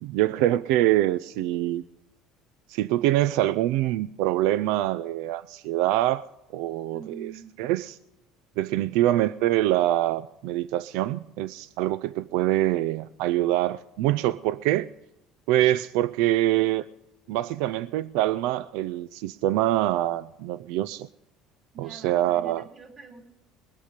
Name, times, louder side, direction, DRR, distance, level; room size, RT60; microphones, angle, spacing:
voice 1, 0.0-1.8 2.7-6.2 6.5-7.3 7.6-7.9 8.6-14.9 15.5-16.8 17.3-21.1 21.8-22.6, right 14 dB, 80° right, 16 dB, 0.4 m, -25 dB
voice 2, 6.9-7.6 21.7-23.2, right 5 dB, 30° right, 2 dB, 3.5 m, -45 dB
21.0 x 8.3 x 5.1 m, 0.88 s
cardioid pair, 125°, 0 cm